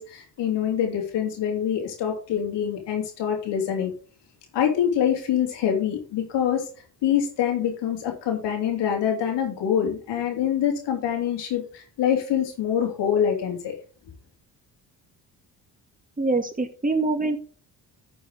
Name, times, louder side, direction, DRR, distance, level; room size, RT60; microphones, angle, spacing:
voice 1, 0.0-3.9 4.5-6.7 7.0-13.8, left 9 dB, 85° left, 2 dB, 3.3 m, -25 dB
voice 2, 16.2-17.4, right 3 dB, 20° right, 5 dB, 2.3 m, -24 dB
12.5 x 6.8 x 3.7 m, 0.38 s
cardioid pair, 75°, 41 cm